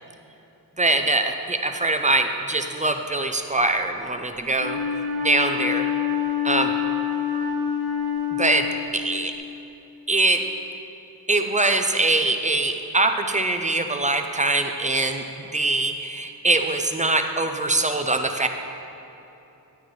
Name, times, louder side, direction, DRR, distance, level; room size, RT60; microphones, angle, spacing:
voice 1, 0.8-4.8 5.2-5.9 6.4-6.7 8.3-8.7 8.9-9.3 10.1-10.4 11.3-15.2 15.5-18.5, right 2 dB, 20° right, 6 dB, 0.4 m, -23 dB
Wind instrument woodwind instrument, 4.5-9.3, left 8 dB, 75° right, 1.0 m, -26 dB
11.5 x 9.9 x 3.1 m, 3.0 s
wide cardioid pair, 175°, 39 cm